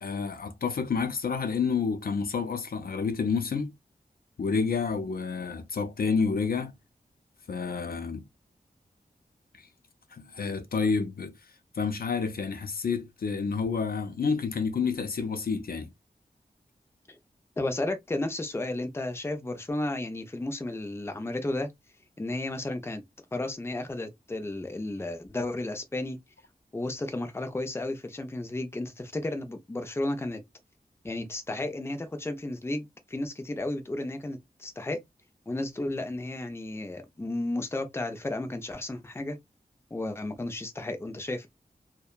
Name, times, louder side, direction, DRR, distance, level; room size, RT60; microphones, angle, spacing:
voice 1, 0.0-3.7 4.4-6.7 7.5-8.2 9.6-9.7 10.1-11.3 11.7-15.9, left 5 dB, 70° left, 0.6 m, -29 dB
voice 2, 17.6-21.7 22.2-23.0 23.3-26.2 26.7-30.4 31.0-35.0 35.5-39.4 39.9-41.5, left 2 dB, 15° left, 0.5 m, -33 dB
2.7 x 2.2 x 2.2 m
wide cardioid pair, 90°, 16 cm